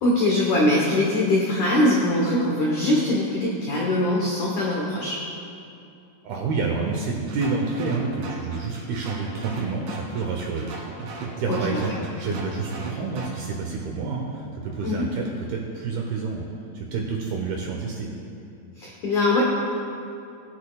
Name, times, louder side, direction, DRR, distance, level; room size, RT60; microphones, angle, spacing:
voice 1, 0.0-5.2 11.5-11.8 14.8-15.0 18.8-19.4, left 1 dB, 85° left, -4 dB, 1.7 m, -22 dB
voice 2, 6.2-16.5 16.7-18.1, right 4 dB, 75° right, 0 dB, 2.3 m, -29 dB
sound 1, 7.3-13.3, right 3 dB, 60° right, 2.8 m, -37 dB
19.0 x 8.4 x 2.3 m, 2.7 s
omnidirectional pair, 5.3 m